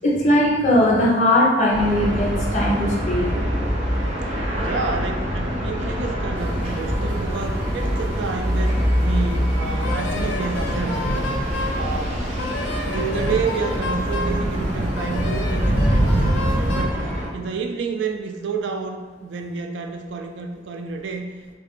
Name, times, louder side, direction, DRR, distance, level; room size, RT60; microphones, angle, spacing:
voice 1, 0.0-3.3 11.8-11.9, left 1 dB, 40° left, -3 dB, 0.7 m, -19 dB
sound 1, 1.7-17.3, equal, 40° right, 0.7 m, -25 dB
voice 2, 4.6-11.3 11.8-12.2 12.9-21.3, right 5 dB, 75° right, 4 dB, 0.4 m, -29 dB
sound 2, 6.4-16.9, right 1 dB, 10° left, 0.8 m, -27 dB
Wind instrument woodwind instrument, 9.8-11.8 12.4-14.4 14.9-17.0, left 2 dB, 80° left, 0.5 m, -31 dB
3.2 x 2.4 x 3.6 m, 1.4 s
head